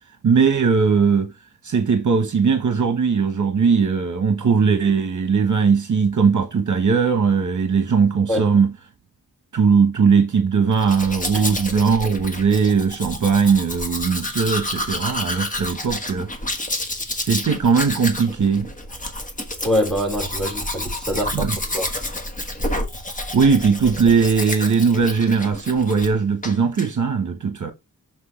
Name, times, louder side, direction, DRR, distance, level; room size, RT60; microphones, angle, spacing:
voice 1, 0.2-1.3 1.6-8.7 9.5-16.3 17.1-18.7 21.3-21.6 23.3-27.7, right 5 dB, 55° right, 1.1 m, -19 dB
Domestic sounds home sounds, 10.7-26.2 26.4-26.9, left 1 dB, 20° left, 1.4 m, -29 dB
voice 2, 19.6-21.9, equal, ahead, 4.1 m, -24 dB
6.4 x 6.0 x 3.1 m
wide cardioid pair, 150°, 35 cm